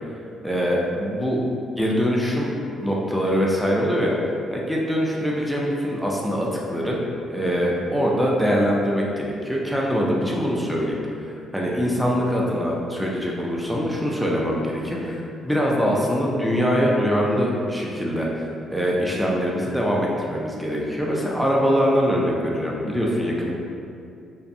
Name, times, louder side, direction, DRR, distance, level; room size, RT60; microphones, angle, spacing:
voice 1, 0.4-1.4 1.8-2.5 2.8-4.1 4.5-7.0 7.3-23.5, equal, ahead, -3 dB, 0.4 m, -23 dB
2.5 x 2.2 x 2.6 m, 2.5 s
cardioid pair, 90°, 0 cm